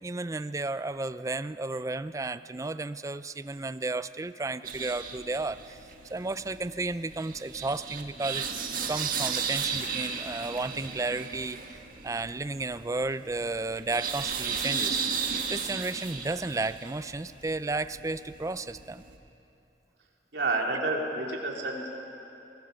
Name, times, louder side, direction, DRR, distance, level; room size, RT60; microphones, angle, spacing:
voice 1, 0.0-8.5 8.9-11.6 12.0-15.0 15.5-19.0, right 3 dB, 20° right, 14 dB, 0.4 m, -33 dB
sound 1, 4.6-19.2, right 6 dB, 50° right, 1.7 m, -35 dB
voice 2, 20.3-21.9, right 2 dB, 75° right, 0 dB, 3.2 m, -29 dB
22.5 x 20.5 x 6.7 m, 2.8 s
head